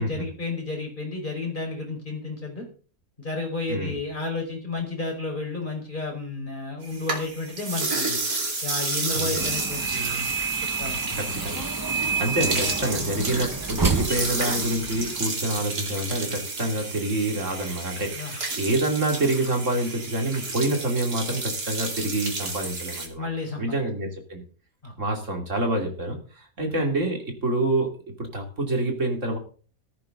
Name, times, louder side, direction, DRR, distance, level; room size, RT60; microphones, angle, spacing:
voice 1, 0.0-2.7 3.2-8.2 8.6-10.3 10.8-11.2 18.2-18.3 23.2-23.8 24.8-24.9, left 3 dB, 35° left, 1 dB, 5.3 m, -32 dB
sound 1, 6.8-23.1, right 3 dB, 85° right, 3.4 m, -31 dB
voice 2, 9.1-9.4 11.1-11.6 11.9-23.3 23.6-24.4 25.0-27.9 28.2-29.4, right 2 dB, 55° right, 3 dB, 3.3 m, -27 dB
sound 2, 9.4-15.2, right 4 dB, 30° right, 0.4 m, -29 dB
15.0 x 13.5 x 3.9 m, 0.39 s
omnidirectional pair, 1.5 m